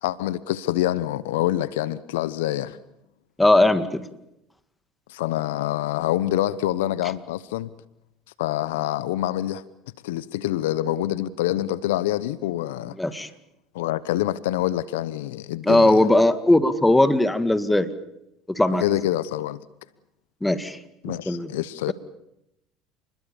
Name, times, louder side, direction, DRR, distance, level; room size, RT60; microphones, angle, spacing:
voice 1, 0.0-2.8 5.1-7.7 8.4-9.6 10.0-12.9 13.7-16.0 18.8-19.6 21.0-21.9, left 14 dB, 85° left, 0.9 m, -26 dB
voice 2, 3.4-4.1 13.0-13.3 15.6-17.9 18.5-18.8 20.4-20.8 21.3-21.5 21.9-22.0, left 1 dB, 10° left, 2.1 m, -19 dB
29.5 x 21.5 x 7.1 m
hypercardioid pair, 85°, 0 cm